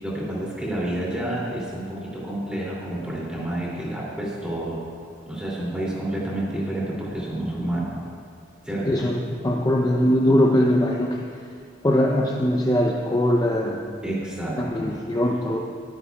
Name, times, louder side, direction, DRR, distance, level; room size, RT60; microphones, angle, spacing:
voice 1, 0.0-4.8 5.2-7.9 8.6-9.1 14.0-14.9, right 1 dB, 5° right, -6 dB, 2.6 m, -29 dB
voice 2, 8.9-9.2 9.4-11.2 11.8-13.8 14.6-15.6, left 1 dB, 20° left, -1 dB, 0.5 m, -21 dB
19.5 x 9.8 x 2.3 m, 2.2 s
head